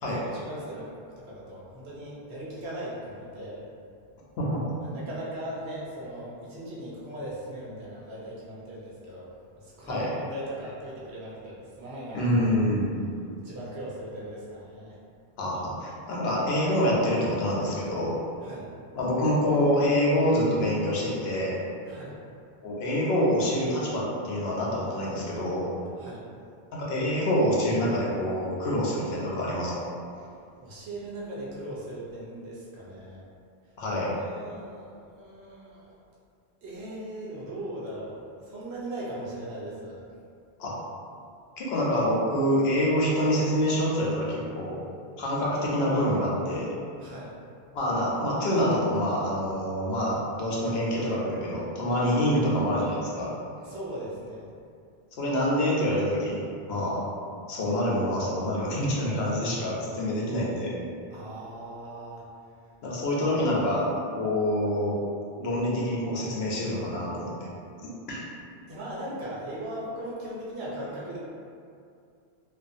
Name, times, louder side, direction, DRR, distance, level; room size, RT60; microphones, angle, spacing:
voice 1, 0.0-3.6 4.8-12.4 13.4-15.0 18.4-18.7 21.9-22.2 26.0-26.2 30.6-33.2 33.9-36.0 36.6-40.0 47.0-47.3 52.0-52.2 53.6-54.4 61.1-62.3 68.7-71.2, right 1 dB, 85° right, -6 dB, 1.0 m, -39 dB
voice 2, 12.1-13.0 15.4-18.1 19.0-21.5 22.6-25.7 26.7-29.8 33.8-34.1 40.6-40.7 41.6-44.7 45.2-46.7 47.7-53.3 55.2-56.4 56.7-57.0 57.5-60.8 62.8-63.8 64.2-65.0 65.4-67.3 68.1-68.2, equal, 75° left, -5 dB, 0.9 m, -26 dB
2.5 x 2.3 x 2.5 m, 2.4 s
omnidirectional pair, 1.1 m